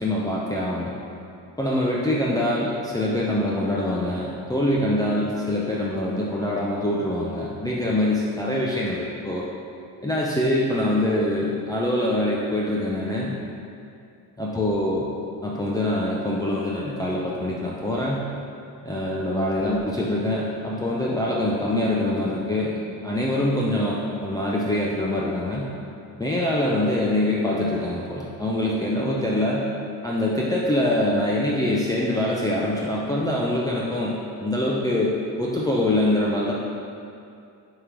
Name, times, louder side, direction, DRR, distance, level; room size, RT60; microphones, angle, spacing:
voice 1, 0.0-0.9 1.6-9.4 10.0-13.4 14.4-15.1 15.4-18.3 18.8-22.8 23.0-25.7 26.2-29.7 30.0-36.5, left 1 dB, 10° left, -5 dB, 0.6 m, -24 dB
6.4 x 3.7 x 4.7 m, 2.5 s
cardioid pair, 90°, 37 cm